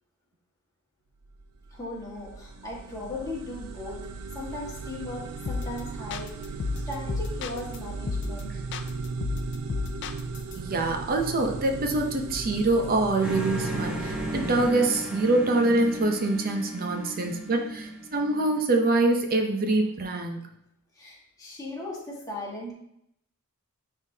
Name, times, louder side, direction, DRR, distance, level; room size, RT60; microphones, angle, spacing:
sound 1, 1.2-14.7, right 4 dB, 80° right, 0.5 m, -37 dB
voice 1, 1.7-4.1 4.3-6.3 6.8-8.5 21.0-22.7, left 2 dB, 15° left, -5 dB, 1.6 m, -37 dB
sound 2, 5.5-5.8 6.1-7.8 8.1-8.4 8.7-10.5, left 4 dB, 55° left, 0.4 m, -31 dB
voice 2, 10.5-20.5, right 2 dB, 40° right, 3 dB, 0.6 m, -25 dB
sound 3, 13.2-18.9, right 1 dB, 5° right, 1.1 m, -35 dB
9.5 x 3.6 x 2.8 m, 0.76 s
head